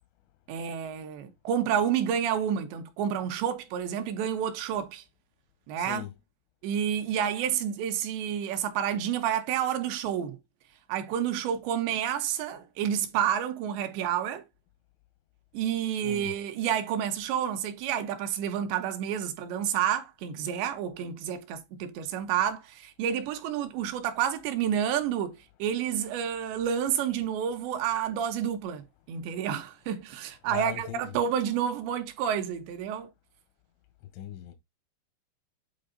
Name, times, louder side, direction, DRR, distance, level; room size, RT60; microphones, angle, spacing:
voice 1, 0.5-5.0 5.7-6.1 6.6-10.4 10.9-14.4 15.5-25.3 25.6-33.1, right 9 dB, 75° right, 2.8 m, -29 dB
voice 2, 5.8-6.1 16.0-16.3 30.5-31.0 34.1-34.6, left 13 dB, 90° left, 3.4 m, -38 dB
8.8 x 3.2 x 3.8 m
omnidirectional pair, 5.4 m